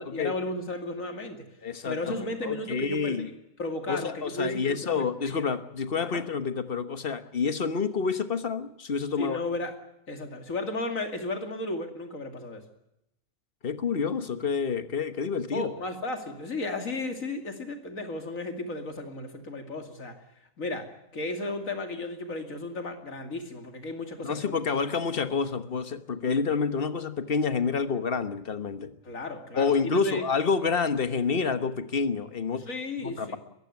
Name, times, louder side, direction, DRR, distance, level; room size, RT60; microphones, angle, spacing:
voice 1, 0.0-1.5 1.8-5.4 6.0-6.2 9.2-9.7 10.1-12.6 15.5-20.2 20.6-24.6 29.0-30.3 32.7-33.4, left 2 dB, 80° left, 6 dB, 3.0 m, -34 dB
voice 2, 1.6-3.3 3.9-9.4 13.6-15.7 24.2-28.9 29.6-32.7 33.0-33.4, left 5 dB, 45° left, 10 dB, 1.4 m, -28 dB
22.5 x 15.0 x 9.4 m, 0.84 s
omnidirectional pair, 1.4 m